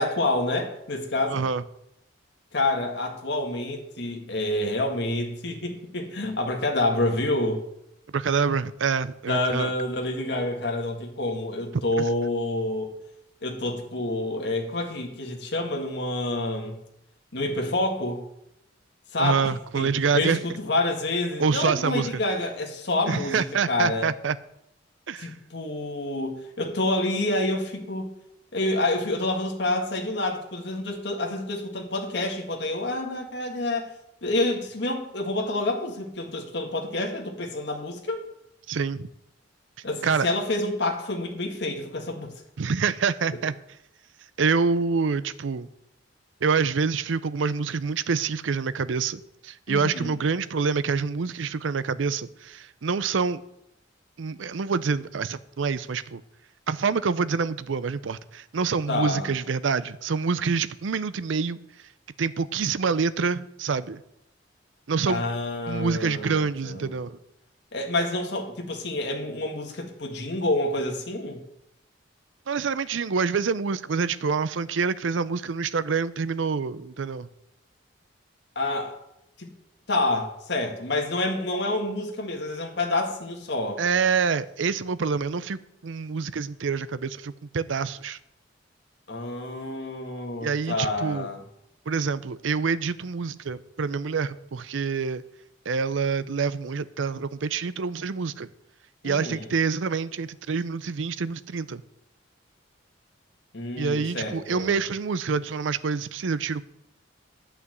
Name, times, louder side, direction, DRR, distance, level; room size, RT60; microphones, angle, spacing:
voice 1, 0.0-1.4 2.5-7.6 9.3-12.9 13.4-16.8 17.3-18.2 19.1-24.1 25.2-28.1 28.5-33.9 34.2-38.2 39.8-42.3 49.7-50.1 58.9-59.3 65.1-67.0 67.7-71.4 78.6-79.0 79.4-79.5 79.9-83.8 89.1-91.4 99.0-99.5 103.5-104.7, left 2 dB, 60° left, 1.8 m, -28 dB
voice 2, 1.3-1.6 8.1-9.7 12.0-12.1 19.2-20.4 21.4-22.2 23.1-24.4 25.1-25.3 38.7-39.1 40.0-40.3 42.6-43.6 44.4-45.7 46.4-53.4 54.2-56.2 56.7-61.6 62.2-64.0 64.9-65.2 65.7-67.2 72.5-77.3 83.8-88.2 90.4-91.3 91.9-95.2 95.7-98.5 99.0-101.8 103.8-106.6, right 5 dB, 75° right, 0.5 m, -26 dB
9.8 x 5.7 x 7.8 m
head